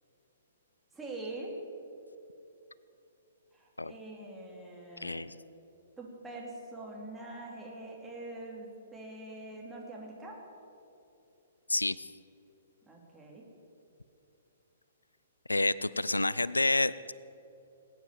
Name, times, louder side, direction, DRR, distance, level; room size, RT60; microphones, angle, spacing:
voice 1, 0.9-1.5 3.5-5.2 6.0-10.4 12.9-13.4, right 2 dB, 10° right, -2 dB, 3.1 m, -44 dB
voice 2, 5.0-5.3 11.7-12.1 15.5-17.1, left 2 dB, 80° left, 19 dB, 0.4 m, -29 dB
20.0 x 9.5 x 7.5 m, 2.8 s
figure-of-eight pair, 120°, 0 cm